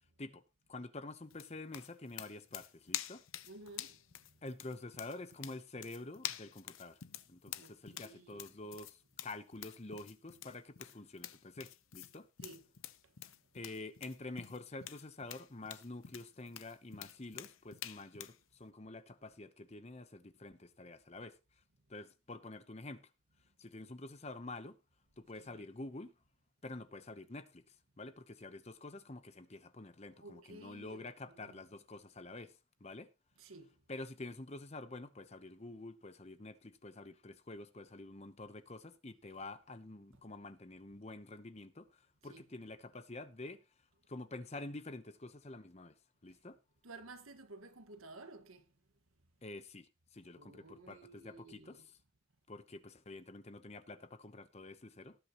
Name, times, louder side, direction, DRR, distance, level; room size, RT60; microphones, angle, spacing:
voice 1, 0.7-3.2 4.4-7.0 7.3-12.3 13.5-21.4 21.9-23.1 23.6-24.8 25.2-26.1 26.6-33.1 33.9-43.6 44.1-45.9 46.2-46.6 49.4-51.8 52.5-55.2, left 2 dB, 30° left, 0.8 m, -48 dB
sound 1, 1.3-18.4, left 12 dB, 70° left, 0.7 m, -47 dB
voice 2, 3.4-4.4 7.5-8.4 12.4-12.7 13.0-13.2 25.4-25.6 30.1-31.6 33.4-33.8 40.1-40.2 42.3-42.4 46.3-46.4 46.8-48.8 50.3-51.9, right 2 dB, 80° right, 1.6 m, -54 dB
18.5 x 8.4 x 3.0 m
head